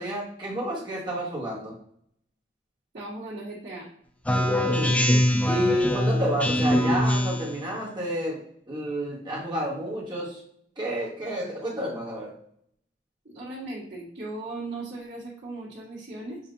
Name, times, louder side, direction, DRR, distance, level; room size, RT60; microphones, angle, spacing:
voice 1, 0.0-1.7 4.4-5.1 5.4-10.4 10.8-12.3, equal, 25° right, -5 dB, 1.5 m, -30 dB
voice 2, 2.9-3.9 13.2-16.4, right 2 dB, 65° right, -12 dB, 1.7 m, -37 dB
Speech synthesizer, 4.2-7.6, left 1 dB, 10° left, 0.3 m, -23 dB
6.9 x 2.6 x 2.6 m, 0.66 s
head